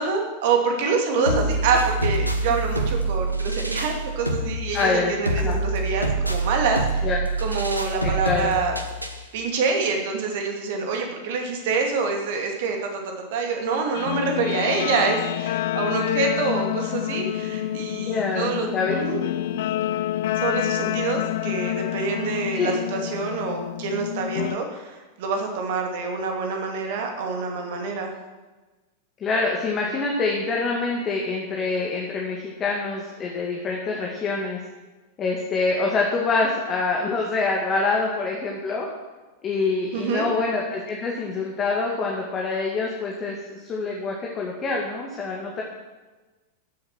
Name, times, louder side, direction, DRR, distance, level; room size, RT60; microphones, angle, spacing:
voice 1, 0.0-7.1 7.4-8.7 9.3-13.0 13.3-18.7 18.9-19.2 20.4-28.1 39.9-40.3, right 4 dB, 50° right, 3 dB, 2.5 m, -26 dB
sound 1, 1.3-9.3, right 2 dB, 90° right, 1.3 m, -26 dB
voice 2, 4.7-5.6 7.0-7.2 8.0-8.5 18.1-18.9 22.5-22.7 29.2-34.6 35.2-38.9 39.4-45.6, left 3 dB, 25° left, -1 dB, 2.1 m, -26 dB
Guitar, 13.9-24.6, left 13 dB, 55° left, 0.4 m, -28 dB
14.5 x 7.9 x 6.3 m, 1.2 s
figure-of-eight pair, 90°, 0 cm